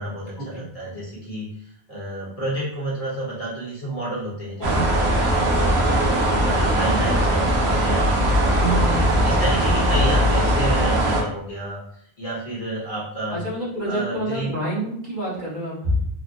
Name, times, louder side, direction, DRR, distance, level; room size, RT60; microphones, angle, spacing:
voice 1, 0.0-1.5 1.9-8.3 8.6-8.9 9.2-11.8 12.2-13.4 13.8-14.5, right 1 dB, 40° left, -7 dB, 0.9 m, -30 dB
voice 2, 4.6-5.0 8.6-9.1 13.3-16.1, equal, 50° right, -8 dB, 1.3 m, -27 dB
sound 1, 4.6-11.2, right 1 dB, 90° right, 1.0 m, -20 dB
3.1 x 2.0 x 2.6 m, 0.67 s
omnidirectional pair, 1.0 m